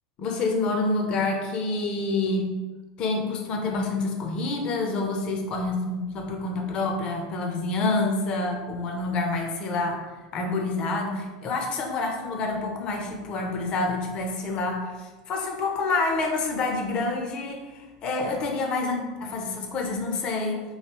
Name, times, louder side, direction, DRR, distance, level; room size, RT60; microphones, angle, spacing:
voice 1, 0.2-2.5 3.0-10.0 10.3-20.6, left 3 dB, 45° left, 2 dB, 0.7 m, -27 dB
3.1 x 2.7 x 3.0 m, 1.2 s
supercardioid pair, 115°, 2 cm